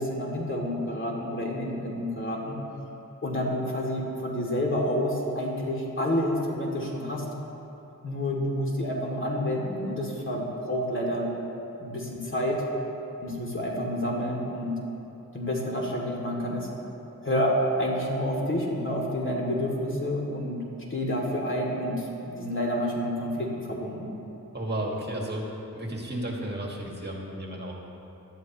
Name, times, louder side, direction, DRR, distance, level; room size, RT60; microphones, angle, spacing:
voice 1, 0.0-2.6 3.2-7.3 8.0-11.3 11.8-12.6 13.2-14.7 15.3-16.7 17.2-17.5 17.8-20.6 20.9-24.1, left 1 dB, 35° left, -2 dB, 2.7 m, -29 dB
voice 2, 24.5-25.4 25.7-27.7, right 1 dB, 30° right, -2 dB, 2.1 m, -33 dB
17.5 x 12.0 x 3.1 m, 2.9 s
cardioid pair, 70°, 33 cm